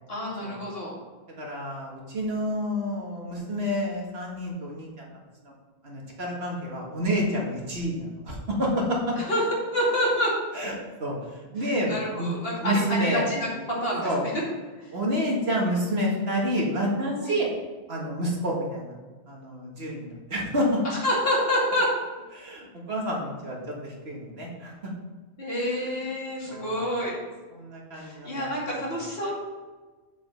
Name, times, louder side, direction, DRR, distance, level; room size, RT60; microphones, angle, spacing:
voice 1, 0.1-1.0 9.2-9.4 9.7-10.3 11.6-14.1 14.8-14.9 17.2-17.4 20.8-21.9 25.4-27.2 27.9-29.3, equal, 65° left, -5 dB, 2.8 m, -28 dB
voice 2, 1.4-5.1 5.4-5.5 5.8-9.2 10.5-12.3 12.6-13.2 14.0-14.2 14.9-17.5 17.9-18.9 19.3-20.8 22.3-24.9 25.7-26.0 26.5-26.8 27.5-28.6, equal, 75° right, -2 dB, 2.1 m, -29 dB
6.9 x 5.3 x 6.6 m, 1.3 s
omnidirectional pair, 1.1 m